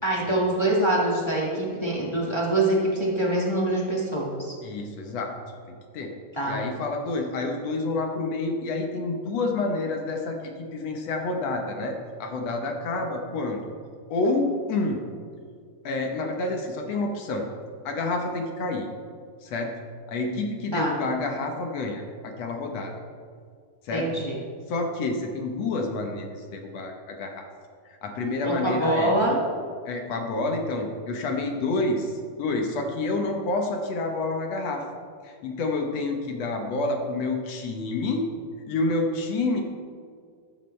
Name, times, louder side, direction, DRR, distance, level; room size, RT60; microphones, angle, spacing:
voice 1, 0.0-4.5 6.3-6.6 20.7-21.0 23.9-24.4 28.4-29.4, right 1 dB, 35° left, -4 dB, 0.4 m, -24 dB
voice 2, 4.6-5.3 5.7-6.1 6.5-13.6 14.1-15.0 15.8-17.5 17.9-18.9 19.4-19.7 20.1-22.9 23.8-24.1 24.7-27.5 27.9-29.1 29.9-34.8 35.2-38.3 38.7-39.6, left 2 dB, 65° left, 2 dB, 1.9 m, -28 dB
13.5 x 13.0 x 3.3 m, 2.1 s
omnidirectional pair, 3.8 m